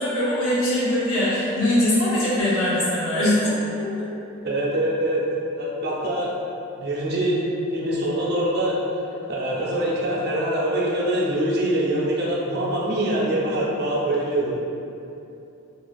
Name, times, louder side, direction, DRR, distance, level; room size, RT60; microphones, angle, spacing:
voice 1, 0.0-3.5 4.0-4.1, left 1 dB, 70° left, -8 dB, 0.7 m, -21 dB
voice 2, 4.4-5.2 5.5-6.3 6.8-7.4 7.7-8.8 9.3-14.5, right 1 dB, 50° right, -6 dB, 0.5 m, -24 dB
2.5 x 2.4 x 2.3 m, 2.8 s
head